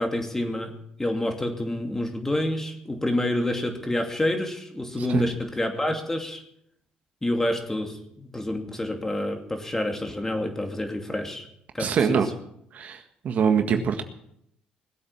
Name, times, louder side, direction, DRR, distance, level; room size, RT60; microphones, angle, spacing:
voice 1, 0.0-6.4 7.2-11.5 11.7-12.2, left 1 dB, 15° left, 5 dB, 2.7 m, -28 dB
voice 2, 11.8-12.3 12.7-14.0, right 7 dB, 55° right, 6 dB, 1.7 m, -24 dB
20.0 x 8.5 x 7.5 m, 0.74 s
cardioid pair, 95°, 3 cm